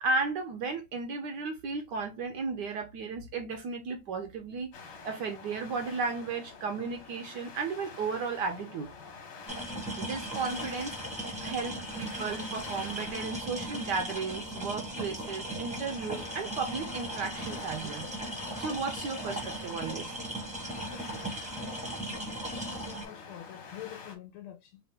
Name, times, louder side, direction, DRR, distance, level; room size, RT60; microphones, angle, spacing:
voice 1, 0.0-4.7 5.0-8.9 10.0-18.1 18.6-20.1, right 4 dB, 70° right, 1.1 m, -34 dB
sound 1, 4.7-24.2, left 5 dB, 60° left, 1.6 m, -48 dB
sound 2, 9.5-23.0, right 1 dB, 5° right, 0.7 m, -38 dB
voice 2, 22.0-24.8, left 12 dB, 85° left, 1.5 m, -46 dB
4.1 x 2.4 x 3.4 m
omnidirectional pair, 2.3 m